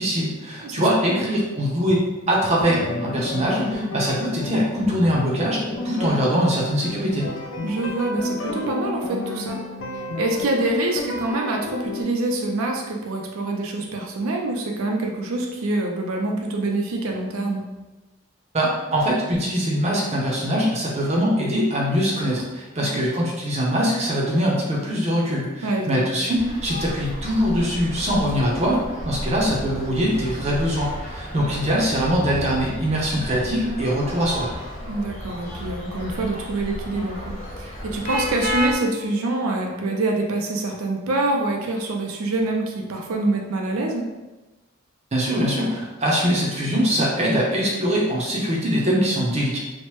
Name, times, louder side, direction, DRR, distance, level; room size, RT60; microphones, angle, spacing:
voice 1, 0.0-7.3 18.5-34.5 45.1-49.6, equal, 30° right, -3 dB, 0.5 m, -22 dB
voice 2, 0.6-1.3 7.6-9.6 9.9-17.7 22.8-23.0 25.6-26.1 34.9-44.1, right 2 dB, 80° right, 1 dB, 0.4 m, -26 dB
sound 1, 2.6-12.0, left 2 dB, 65° left, 0.4 m, -31 dB
sound 2, 26.3-38.8, equal, 35° left, 1.0 m, -32 dB
3.0 x 2.0 x 3.1 m, 1.1 s
head